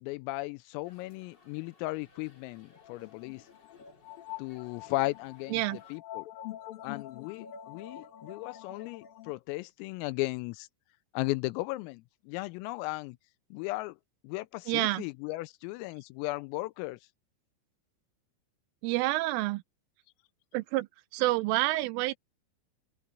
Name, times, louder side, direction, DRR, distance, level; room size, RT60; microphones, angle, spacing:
voice 1, 0.0-3.4 4.4-6.3 6.8-10.7 11.1-13.2 13.5-14.0 14.2-17.0, left 21 dB, 85° left, 3.3 m, -36 dB
sound 1, 0.8-6.0, left 4 dB, 30° left, 2.5 m, -61 dB
sound 2, 2.7-9.3, left 12 dB, 60° left, 2.5 m, -46 dB
voice 2, 14.7-15.0 18.8-19.6 20.5-20.9 21.1-22.1, right 18 dB, 80° right, 3.0 m, -28 dB
open air
omnidirectional pair, 6.0 m